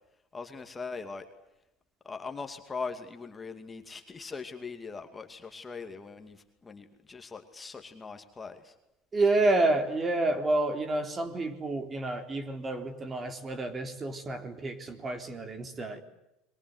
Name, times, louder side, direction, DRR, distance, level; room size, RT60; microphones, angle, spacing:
voice 1, 0.3-1.3 2.0-8.7, left 4 dB, 20° left, 6 dB, 2.5 m, -41 dB
voice 2, 9.1-16.0, right 2 dB, 25° right, 8 dB, 3.9 m, -29 dB
30.0 x 23.0 x 8.1 m, 0.87 s
supercardioid pair, 115°, 0 cm